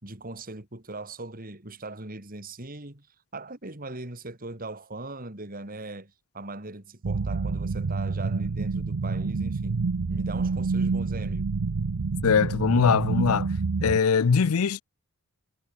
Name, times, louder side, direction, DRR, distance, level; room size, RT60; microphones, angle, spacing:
voice 1, 0.0-3.1 3.3-11.5, right 2 dB, 40° right, 3.4 m, -39 dB
sound 1, 7.0-14.0, right 4 dB, 90° right, 0.7 m, -28 dB
voice 2, 12.2-13.5 13.8-14.8, left 6 dB, 70° left, 0.5 m, -21 dB
head